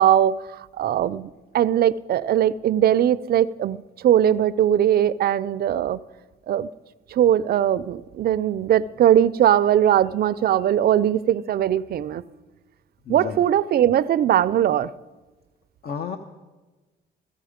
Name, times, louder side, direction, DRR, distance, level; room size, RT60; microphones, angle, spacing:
voice 1, 0.0-6.0 6.5-6.7 7.1-12.2 13.1-14.9, right 10 dB, 50° right, 0.4 m, -20 dB
voice 2, 13.1-13.4 15.8-16.2, left 6 dB, 50° left, 0.8 m, -31 dB
15.0 x 14.5 x 5.1 m
cardioid pair, 90°, 20 cm